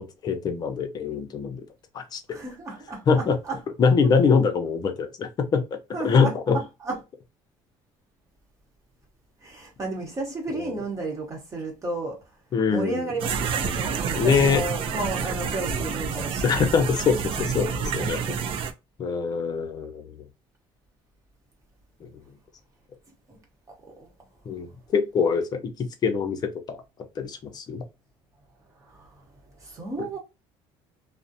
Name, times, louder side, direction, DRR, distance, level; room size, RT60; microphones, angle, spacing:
voice 1, 0.0-1.6 1.9-2.2 3.1-3.4 3.8-5.6 6.0-6.6 10.5-10.7 12.5-13.0 14.2-14.6 16.4-18.4 19.0-20.1 22.0-22.1 24.5-24.7 24.9-26.4 26.7-26.8 27.2-27.8 30.0-30.1, left 5 dB, 40° left, 0.5 m, -23 dB
voice 2, 2.3-3.6 5.9-7.0 9.4-12.2 12.7-16.5 23.3-23.4 24.0-24.1 28.8-29.1 29.6-30.2, right 2 dB, 30° right, 0.9 m, -33 dB
sound 1, 13.2-18.7, right 6 dB, 55° right, 0.4 m, -28 dB
2.4 x 2.0 x 2.6 m
cardioid pair, 115°, 11 cm